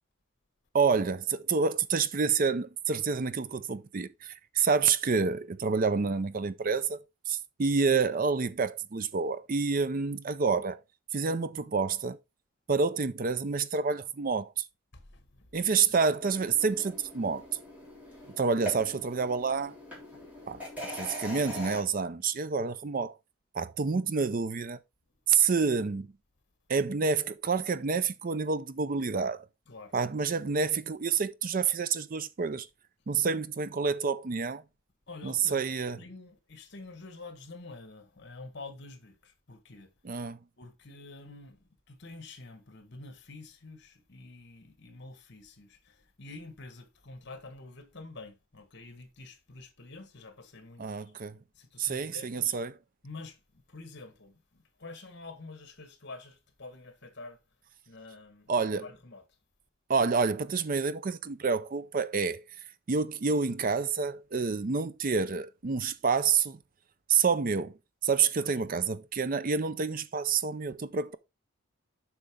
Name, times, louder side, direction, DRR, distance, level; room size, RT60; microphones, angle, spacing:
voice 1, 0.7-7.0 7.3-10.8 11.1-12.2 12.7-14.7 15.5-17.4 18.4-19.7 20.5-23.1 23.5-24.8 25.3-26.1 26.7-29.5 29.9-32.7 33.1-34.6 35.2-36.0 40.0-40.4 50.8-51.4 51.8-52.7 58.5-58.8 59.9-62.4 62.9-66.6 67.1-67.7 68.0-71.2, right 5 dB, 40° right, 0.5 m, -28 dB
voice 2, 14.9-15.9 18.1-18.3 20.3-20.6 29.7-29.9 35.1-35.7 36.0-39.9 40.6-51.1 51.5-52.6 53.0-57.4 57.9-59.2 70.7-70.8, left 3 dB, 55° left, 1.6 m, -48 dB
sound 1, 16.2-21.8, equal, 5° right, 3.5 m, -42 dB
7.8 x 5.9 x 3.6 m
head